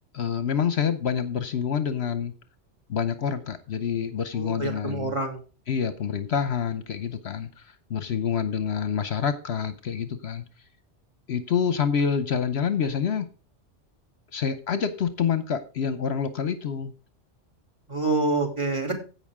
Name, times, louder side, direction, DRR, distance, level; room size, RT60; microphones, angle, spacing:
voice 1, 0.1-2.3 2.9-5.2 5.7-7.5 7.9-10.4 11.3-13.3 14.3-16.9, left 7 dB, 65° left, 11 dB, 1.0 m, -27 dB
voice 2, 4.3-5.4 17.9-18.9, right 3 dB, 25° right, 2 dB, 2.9 m, -27 dB
16.0 x 5.7 x 3.6 m, 0.35 s
omnidirectional pair, 1.2 m